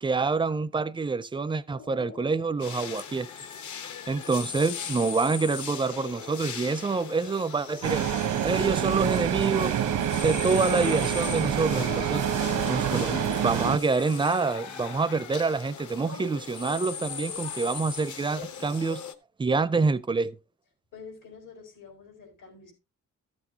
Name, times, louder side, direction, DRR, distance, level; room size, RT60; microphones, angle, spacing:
voice 1, 0.0-3.3 4.1-8.0 8.4-9.8 10.2-12.2 12.7-19.0 19.4-20.4, right 4 dB, 15° right, 0.4 m, -27 dB
sound 1, 1.7-4.1 10.6-13.7, left 5 dB, 35° left, 0.5 m, -40 dB
sound 2, 2.6-19.1, left 7 dB, 65° left, 1.0 m, -39 dB
sound 3, 7.8-13.8, right 9 dB, 85° right, 0.9 m, -27 dB
voice 2, 20.9-22.7, left 5 dB, 85° left, 5.8 m, -47 dB
14.0 x 8.0 x 2.8 m
wide cardioid pair, 155°, 31 cm